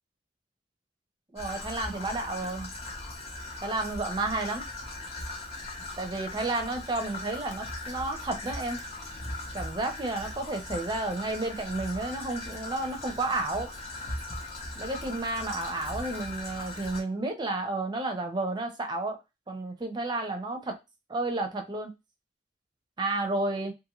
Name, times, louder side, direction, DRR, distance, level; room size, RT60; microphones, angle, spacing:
voice 1, 1.3-2.7 3.6-4.6 6.0-8.8 9.5-13.7 14.7-19.2 19.5-20.8 21.1-21.9 23.0-23.7, right 2 dB, 25° right, 0.5 m, -31 dB
Traffic noise roadway noise / Trickle dribble, 1.4-17.0, left 2 dB, 35° left, 0.7 m, -39 dB
2.6 x 2.6 x 2.9 m
head